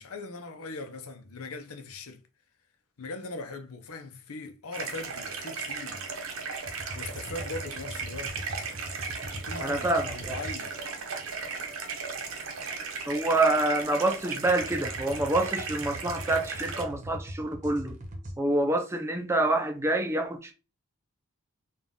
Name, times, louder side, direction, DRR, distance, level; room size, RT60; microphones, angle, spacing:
voice 1, 0.0-2.2 3.0-6.0 6.9-8.4 9.3-10.8, left 3 dB, 90° left, 0.7 m, -40 dB
sound 1, 4.7-16.8, right 5 dB, 80° right, 0.9 m, -36 dB
sound 2, 6.7-10.6 14.5-18.4, equal, 35° right, 0.9 m, -41 dB
voice 2, 9.6-10.3 13.1-18.0 18.4-20.5, right 2 dB, 10° right, 0.5 m, -27 dB
4.0 x 2.5 x 3.6 m
head